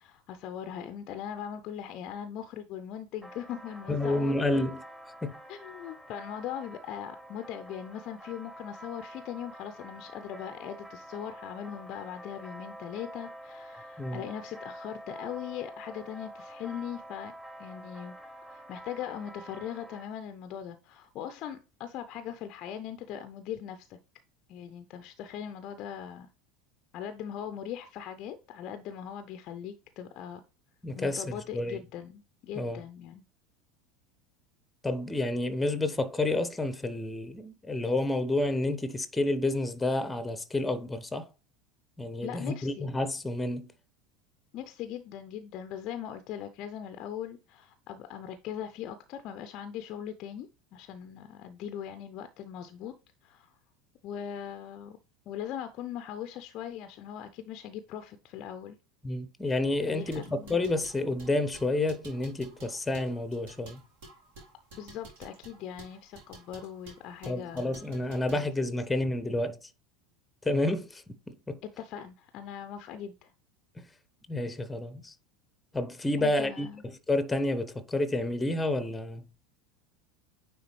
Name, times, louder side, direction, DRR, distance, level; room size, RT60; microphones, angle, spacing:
voice 1, 0.0-4.8 5.5-17.3 17.6-18.1 18.5-24.0 24.5-26.3 26.9-30.4 31.0-33.2 42.2-42.9 44.5-52.9 53.2-53.6 54.0-55.0 55.3-58.8 59.9-60.6 64.7-67.8 68.3-68.5 71.8-73.3 76.2-76.8, left 9 dB, 45° left, 0.5 m, -40 dB
sound 1, 3.2-20.1, equal, 5° right, 1.1 m, -47 dB
voice 2, 3.9-4.8 5.2-5.3 14.0-14.2 30.8-31.8 32.6-32.8 34.8-41.3 42.0-43.7 59.0-63.8 67.3-69.6 70.4-71.6 73.8-73.9 74.3-75.1 75.7-76.7 77.1-79.2, left 2 dB, 10° left, 0.8 m, -30 dB
sound 2, 60.0-68.5, right 2 dB, 60° right, 2.0 m, -51 dB
9.4 x 3.5 x 3.1 m
figure-of-eight pair, 75°, 0 cm